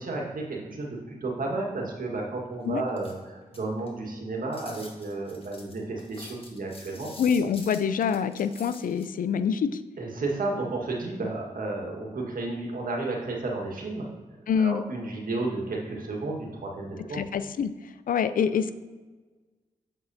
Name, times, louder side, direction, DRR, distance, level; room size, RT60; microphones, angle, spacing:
voice 1, 0.0-7.1 10.0-14.1 14.6-17.2, right 2 dB, 65° right, 0 dB, 1.6 m, -32 dB
sound 1, 2.9-4.0 4.5-9.1, left 2 dB, 35° left, 1.6 m, -47 dB
voice 2, 7.2-9.8 14.5-14.8 17.1-17.7 18.1-18.7, left 7 dB, 65° left, 12 dB, 0.4 m, -25 dB
7.7 x 6.0 x 2.8 m, 1.3 s
supercardioid pair, 40°, 16 cm